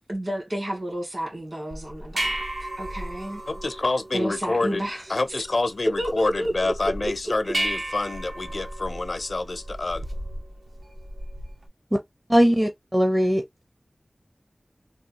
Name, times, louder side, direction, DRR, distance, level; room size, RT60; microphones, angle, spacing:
voice 1, 0.1-3.4 4.1-5.0 6.0-7.1, equal, 55° right, 1.9 m, -31 dB
sound 1, 1.7-11.7, right 1 dB, 75° right, 0.9 m, -35 dB
voice 2, 3.5-10.1, left 2 dB, 65° left, 0.5 m, -27 dB
voice 3, 12.3-13.4, equal, 20° right, 0.6 m, -20 dB
3.6 x 2.3 x 2.8 m
wide cardioid pair, 65°, 0 cm